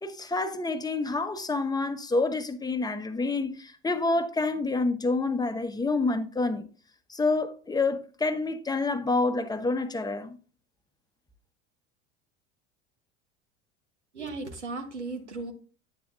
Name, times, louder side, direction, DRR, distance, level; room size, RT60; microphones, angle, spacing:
voice 1, 0.0-6.7 7.1-10.4, left 3 dB, 10° left, 0.9 m, -28 dB
voice 2, 14.1-15.5, right 3 dB, 90° right, 1.3 m, -36 dB
9.4 x 7.8 x 2.6 m
figure-of-eight pair, 70°, 34 cm